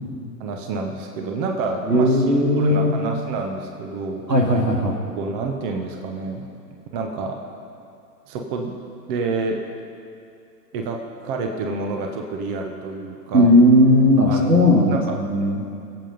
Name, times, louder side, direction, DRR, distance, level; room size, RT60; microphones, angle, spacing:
voice 1, 0.4-4.3 5.2-6.5 6.9-7.4 8.3-8.7 9.1-9.6 10.7-13.5 14.3-15.2, right 3 dB, 30° right, 3 dB, 1.2 m, -28 dB
voice 2, 1.9-2.9 4.3-5.0 13.3-15.6, left 1 dB, 85° right, 1 dB, 2.4 m, -16 dB
21.0 x 8.1 x 5.3 m, 2.5 s
figure-of-eight pair, 110°, 49 cm